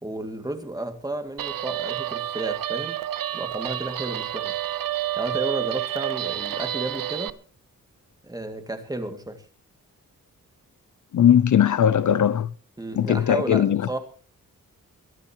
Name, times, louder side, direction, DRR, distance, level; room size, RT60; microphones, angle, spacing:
voice 1, 0.0-3.0 3.3-4.6 5.2-7.3 8.2-9.5 12.8-14.0, right 2 dB, 10° right, 2.1 m, -32 dB
Guitar, 1.4-7.3, right 12 dB, 80° right, 0.7 m, -29 dB
voice 2, 11.1-12.5 13.0-13.9, left 9 dB, 60° left, 0.6 m, -19 dB
22.5 x 13.5 x 2.9 m
wide cardioid pair, 175°, 33 cm